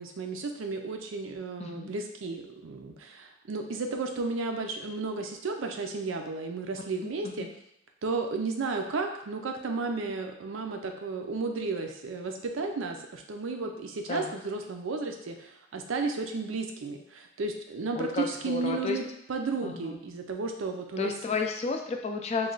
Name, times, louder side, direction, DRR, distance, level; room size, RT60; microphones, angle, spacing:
voice 1, 0.0-7.5 8.0-19.0 19.3-21.1, right 3 dB, 85° right, 4 dB, 0.5 m, -33 dB
voice 2, 1.6-1.9 7.0-7.5 14.1-14.4 17.9-19.0 19.6-20.0 21.0-22.5, left 4 dB, 35° left, 4 dB, 0.3 m, -32 dB
3.1 x 2.2 x 3.8 m, 0.81 s
head